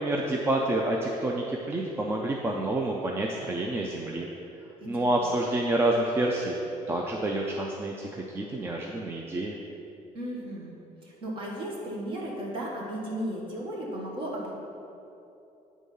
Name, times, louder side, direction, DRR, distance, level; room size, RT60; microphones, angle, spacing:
voice 1, 0.0-4.3 4.9-6.5 6.9-9.5, right 1 dB, 15° right, 0 dB, 0.4 m, -28 dB
voice 2, 4.8-5.5 10.1-10.8 11.0-14.5, right 1 dB, 40° right, -3 dB, 1.5 m, -35 dB
9.0 x 3.6 x 5.4 m, 2.8 s
cardioid pair, 170°, 14 cm